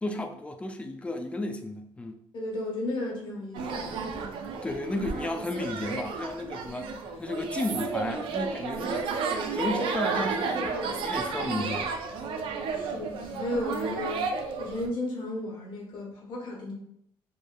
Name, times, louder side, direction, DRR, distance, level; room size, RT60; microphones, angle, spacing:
voice 1, 0.0-2.2 4.6-6.9 7.2-12.0, left 2 dB, 15° left, 5 dB, 0.3 m, -33 dB
voice 2, 2.3-3.9 12.7-14.3 14.6-16.7, left 1 dB, 65° left, -2 dB, 1.0 m, -34 dB
sound 1, 3.5-14.9, right 4 dB, 70° right, 0.4 m, -32 dB
3.0 x 2.1 x 2.2 m, 0.71 s
cardioid pair, 95°, 9 cm